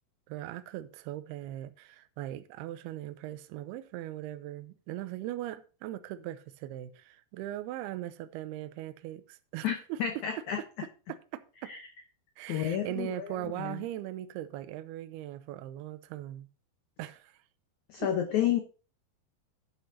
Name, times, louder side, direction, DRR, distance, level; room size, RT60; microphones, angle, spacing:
voice 1, 0.3-10.0 11.1-11.7 12.4-16.5 17.0-17.4 18.0-18.1, right 13 dB, 80° right, 2.5 m, -39 dB
voice 2, 9.6-10.6 11.6-11.8 12.5-13.3 13.6-13.8 17.9-18.6, left 10 dB, 85° left, 1.7 m, -30 dB
11.5 x 9.9 x 2.8 m
omnidirectional pair, 4.9 m